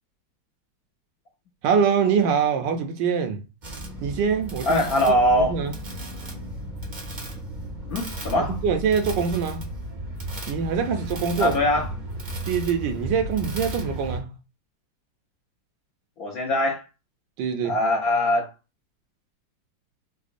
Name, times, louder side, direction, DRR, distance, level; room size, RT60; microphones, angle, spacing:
voice 1, 1.6-3.4 4.0-5.7 8.4-9.7 10.5-11.6 12.5-14.3 17.4-17.8, right 6 dB, 75° right, 1.3 m, -24 dB
Raceway Welding - Engines Spot Welding, 3.6-14.2, right 1 dB, 45° right, 0.6 m, -34 dB
voice 2, 4.7-5.6 7.9-8.6 11.4-11.9 16.2-16.8 17.6-18.5, left 1 dB, 65° left, 0.9 m, -22 dB
4.8 x 2.1 x 2.5 m
omnidirectional pair, 2.1 m